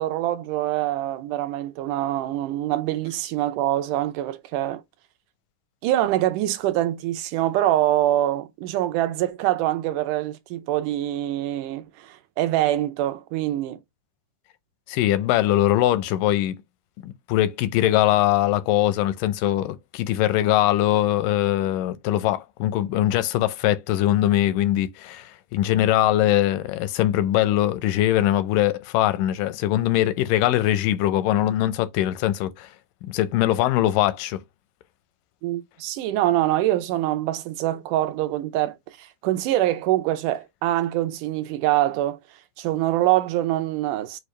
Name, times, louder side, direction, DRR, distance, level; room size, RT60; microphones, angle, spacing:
voice 1, 0.0-4.8 5.8-13.8 35.4-42.2 42.6-44.2, right 14 dB, 80° right, 2.2 m, -24 dB
voice 2, 14.9-16.6 17.0-32.7 33.0-34.4, left 13 dB, 85° left, 2.2 m, -22 dB
6.4 x 2.4 x 3.2 m
omnidirectional pair, 3.7 m